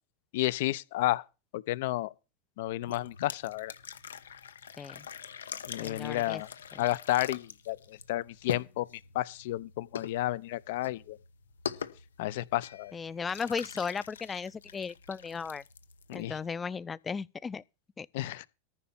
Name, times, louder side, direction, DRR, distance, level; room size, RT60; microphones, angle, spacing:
voice 1, 0.3-1.2 1.5-2.1 2.6-3.7 5.7-6.5 6.8-8.9 9.1-11.2 12.2-12.9 16.1-16.4 18.1-18.5, left 16 dB, 65° left, 0.7 m, -31 dB
sound 1, 2.8-16.5, left 7 dB, 85° left, 1.0 m, -44 dB
voice 2, 5.8-6.4 6.7-6.8 12.9-15.6 16.1-17.6 18.0-18.1, left 5 dB, 20° left, 0.5 m, -36 dB
14.0 x 5.9 x 7.0 m
hypercardioid pair, 95°, 0 cm